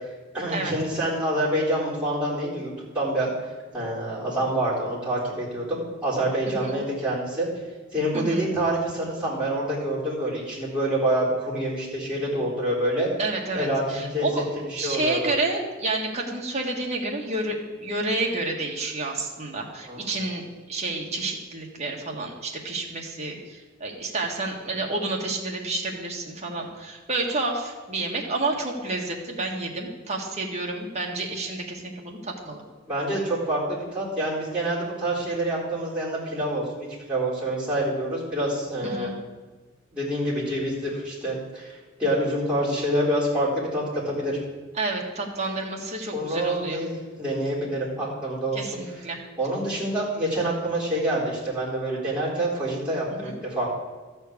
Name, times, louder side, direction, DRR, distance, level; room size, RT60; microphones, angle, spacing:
voice 1, 0.3-3.3 3.7-7.5 7.9-13.1 13.5-14.3 14.6-15.3 19.9-20.1 32.9-39.1 39.9-41.7 42.0-44.4 46.1-48.6 49.4-53.7, right 1 dB, 5° right, -8 dB, 4.1 m, -27 dB
voice 2, 8.1-8.5 13.2-14.5 14.8-32.6 38.8-39.1 44.8-46.8 48.5-49.2 53.1-53.3, right 2 dB, 35° right, -1 dB, 1.8 m, -30 dB
13.0 x 4.5 x 8.5 m, 1.3 s
head